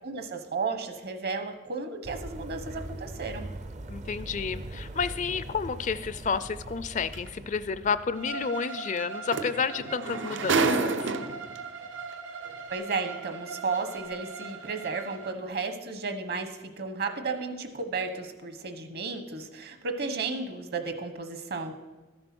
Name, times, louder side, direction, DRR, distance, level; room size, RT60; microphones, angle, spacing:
voice 1, 0.0-3.5 12.7-21.8, right 4 dB, 55° right, 7 dB, 1.1 m, -33 dB
sound 1, 2.0-8.5, right 2 dB, 40° right, 0.5 m, -41 dB
voice 2, 3.9-11.1, left 5 dB, 40° left, 14 dB, 0.4 m, -31 dB
sound 2, 7.1-7.3 9.0-9.1 9.3-11.6 12.5-12.6, right 3 dB, 75° right, 0.7 m, -28 dB
Bowed string instrument, 8.1-15.3, right 5 dB, 90° right, 1.2 m, -41 dB
13.5 x 7.8 x 6.1 m, 1.2 s
head